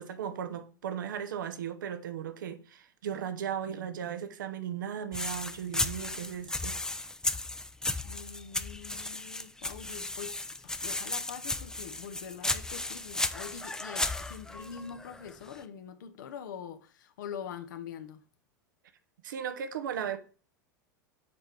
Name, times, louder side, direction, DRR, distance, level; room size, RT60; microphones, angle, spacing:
voice 1, 0.0-6.8 19.2-20.2, right 8 dB, 80° right, 0.7 m, -36 dB
sound 1, 5.1-15.6, left 2 dB, 5° left, 0.4 m, -35 dB
voice 2, 8.0-18.2, left 7 dB, 75° left, 0.8 m, -44 dB
7.0 x 4.5 x 3.3 m
hypercardioid pair, 90°, 10 cm